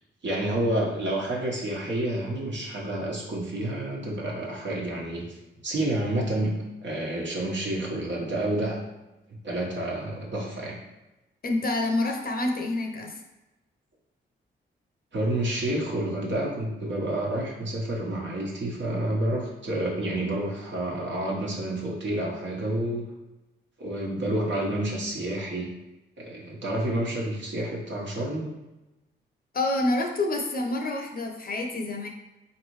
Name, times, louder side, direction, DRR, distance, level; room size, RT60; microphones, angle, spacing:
voice 1, 0.2-5.2 5.6-6.5 6.8-8.8 9.3-10.8 15.1-23.0 23.8-25.7 26.2-28.5, right 1 dB, 65° right, -3 dB, 1.3 m, -29 dB
voice 2, 11.4-13.2 29.5-32.1, left 2 dB, 45° left, 3 dB, 0.8 m, -27 dB
4.0 x 3.2 x 3.1 m, 1.0 s
cardioid pair, 55°, 21 cm